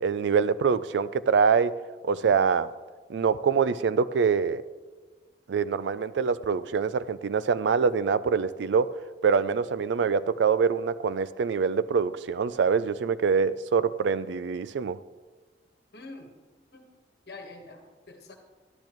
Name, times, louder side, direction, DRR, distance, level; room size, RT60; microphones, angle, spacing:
voice 1, 0.0-1.7 2.0-2.7 3.1-4.6 5.5-8.9 9.2-15.0, right 6 dB, 85° right, 16 dB, 0.4 m, -24 dB
voice 2, 15.9-16.3 16.7-16.8 17.3-18.4, left 2 dB, 65° left, 4 dB, 1.3 m, -45 dB
12.0 x 10.5 x 3.0 m, 1.4 s
head